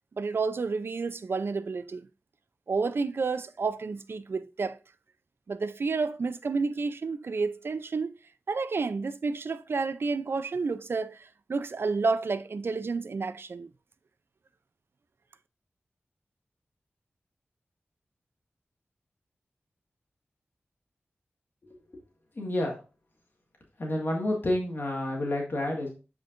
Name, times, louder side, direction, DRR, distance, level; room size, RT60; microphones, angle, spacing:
voice 1, 0.2-2.1 2.7-4.8 5.5-8.1 8.5-13.7, right 4 dB, 65° right, 0.5 m, -30 dB
voice 2, 22.4-22.8 23.8-25.9, left 1 dB, 55° left, 1.8 m, -29 dB
8.5 x 4.6 x 2.5 m
wide cardioid pair, 85°, 4 cm